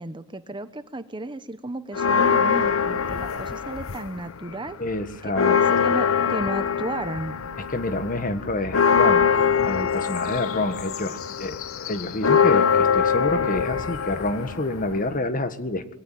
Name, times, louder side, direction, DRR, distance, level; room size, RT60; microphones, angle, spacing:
voice 1, 0.0-4.8 5.2-7.4, right 2 dB, 25° right, 12 dB, 1.0 m, -34 dB
sound 1, 1.9-4.3 4.7-15.2, left 6 dB, 90° left, 0.9 m, -23 dB
voice 2, 4.8-5.9 7.7-9.3 9.6-15.9, left 2 dB, 40° left, 10 dB, 1.7 m, -28 dB
22.0 x 17.5 x 9.3 m, 0.84 s
head